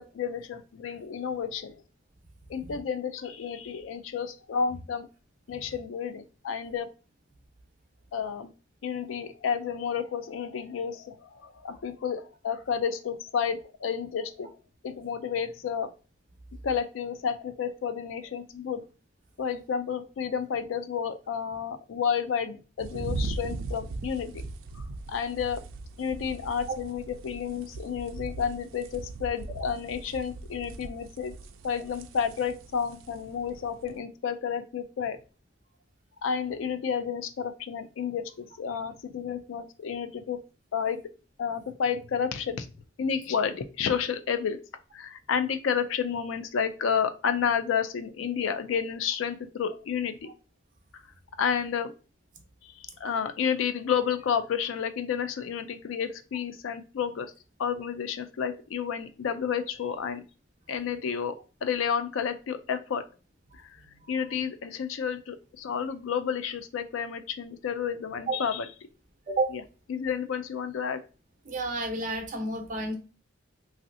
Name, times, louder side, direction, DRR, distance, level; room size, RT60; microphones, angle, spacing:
voice 1, 0.0-1.8 2.5-5.1 5.5-6.9 8.1-8.5 8.8-14.5 14.8-15.9 16.6-18.8 19.4-24.4 24.7-24.8 25.1-25.6 26.0-31.3 31.6-35.2 36.2-40.4 40.7-41.0 41.4-42.7 43.0-44.6 44.9-50.3 50.9-51.0 51.4-51.9 52.6-57.3 57.6-60.2 60.7-61.4 61.6-63.0 63.7-63.8 64.1-68.7 69.5-69.6 69.9-71.0, left 7 dB, 80° left, 10 dB, 0.4 m, -31 dB
sound 1, 22.8-34.0, right 3 dB, 75° right, 0.4 m, -39 dB
voice 2, 71.5-73.0, right 2 dB, 40° right, 3 dB, 0.7 m, -30 dB
3.1 x 2.7 x 2.5 m, 0.34 s
head